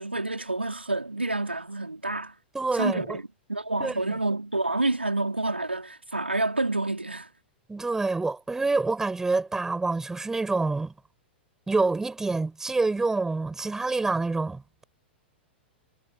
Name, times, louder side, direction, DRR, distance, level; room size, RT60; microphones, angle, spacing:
voice 1, 0.0-2.3 2.7-7.3, right 2 dB, 85° right, 4.4 m, -28 dB
voice 2, 2.5-3.2 3.8-4.0 7.7-10.9 11.7-14.8, right 3 dB, 10° right, 6.0 m, -27 dB
figure-of-eight pair, 100°, 6 cm